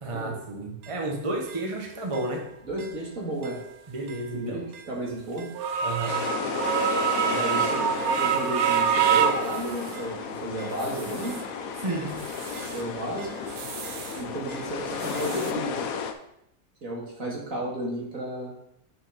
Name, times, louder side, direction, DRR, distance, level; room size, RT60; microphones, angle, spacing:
voice 1, 0.0-2.5 3.9-4.6 5.8-6.2 11.8-12.2, right 2 dB, 25° right, 1 dB, 0.8 m, -31 dB
sound 1, 0.8-0.9 1.5-1.6 2.1-2.2 2.8-2.9 3.4-3.6 4.1-4.2 4.7-4.8 5.4-10.1 10.6-11.5 11.9-12.8 13.2-14.2 14.5-15.5, right 7 dB, 70° right, 1.1 m, -28 dB
voice 2, 2.7-3.6 4.3-5.5 6.0-6.1 7.2-7.9 8.1-11.4 12.6-13.3 14.2-15.9 16.8-18.5, right 1 dB, 55° right, -3 dB, 2.4 m, -33 dB
sound 2, 6.1-16.1, left 6 dB, 65° left, 1.0 m, -33 dB
6.1 x 5.7 x 4.9 m, 0.79 s
omnidirectional pair, 1.7 m